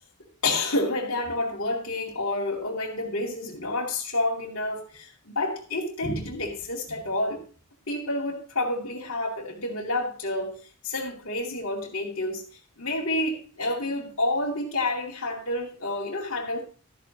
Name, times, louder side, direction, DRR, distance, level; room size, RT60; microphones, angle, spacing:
voice 1, 0.4-7.4 7.9-12.4 12.8-16.6, left 2 dB, 65° left, 2.6 m, -29 dB
13.0 x 10.5 x 2.9 m
head